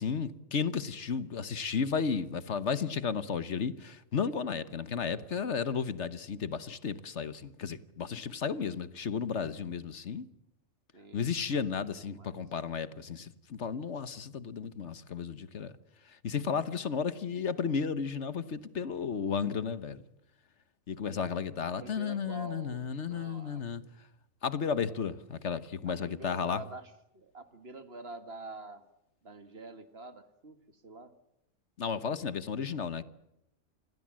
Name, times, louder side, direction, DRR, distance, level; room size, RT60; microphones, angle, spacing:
voice 1, 0.0-10.3 11.1-15.7 16.0-20.0 20.9-23.8 24.4-26.6 31.8-33.0, left 6 dB, 65° left, 1.4 m, -33 dB
voice 2, 10.9-11.6 12.1-12.3 21.6-23.6 25.9-26.8 27.1-28.8 29.2-30.6 30.8-31.1, right 3 dB, 50° right, 2.1 m, -46 dB
28.5 x 21.0 x 7.5 m
omnidirectional pair, 1.3 m